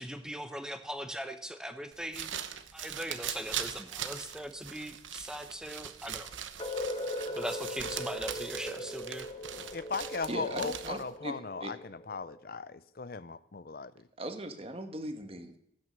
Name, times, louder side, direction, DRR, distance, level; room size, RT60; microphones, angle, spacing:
voice 1, 0.0-2.4 2.7-6.3 7.4-9.3, equal, 5° right, 8 dB, 1.0 m, -40 dB
sound 1, 1.9-11.1, right 9 dB, 90° right, 1.1 m, -41 dB
sound 2, 6.6-12.5, left 1 dB, 30° left, 1.2 m, -40 dB
voice 2, 9.7-13.9, left 4 dB, 50° left, 17 dB, 0.6 m, -38 dB
voice 3, 10.3-11.7 14.2-15.6, right 1 dB, 30° right, 7 dB, 1.5 m, -39 dB
15.0 x 9.4 x 6.7 m, 0.73 s
head